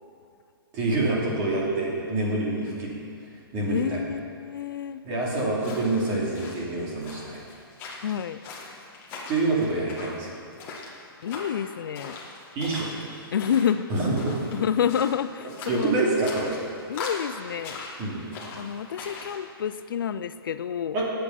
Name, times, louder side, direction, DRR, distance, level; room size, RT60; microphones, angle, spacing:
voice 1, 0.7-2.9 3.5-4.0 5.0-7.4 9.3-10.3 12.5-12.9 13.9-14.3 15.7-16.6 18.0-18.3 20.9-21.1, right 2 dB, 20° right, -4 dB, 2.8 m, -26 dB
voice 2, 3.7-5.0 8.0-8.4 11.2-12.2 13.3-13.9 14.5-15.9 16.9-17.8 18.6-21.0, left 8 dB, 60° left, 12 dB, 0.5 m, -28 dB
sound 1, 5.5-19.4, left 3 dB, 20° left, 1.6 m, -41 dB
19.5 x 8.5 x 5.8 m, 2.6 s
hypercardioid pair, 170°, 13 cm